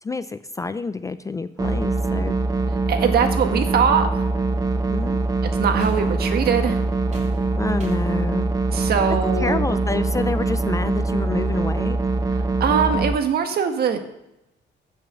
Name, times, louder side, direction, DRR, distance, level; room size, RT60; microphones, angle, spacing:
voice 1, 0.0-2.4 4.9-5.2 7.6-8.5 9.4-12.0, left 4 dB, 15° left, 12 dB, 0.4 m, -28 dB
sound 1, 1.6-13.2, right 3 dB, 20° right, 0.8 m, -23 dB
voice 2, 2.9-4.1 5.4-6.8 8.7-9.7 12.3-14.0, right 7 dB, 55° right, 7 dB, 1.6 m, -22 dB
sound 2, 5.5-8.2, right 3 dB, 35° right, 3.0 m, -42 dB
15.0 x 6.3 x 7.0 m, 0.89 s
cardioid pair, 150°, 19 cm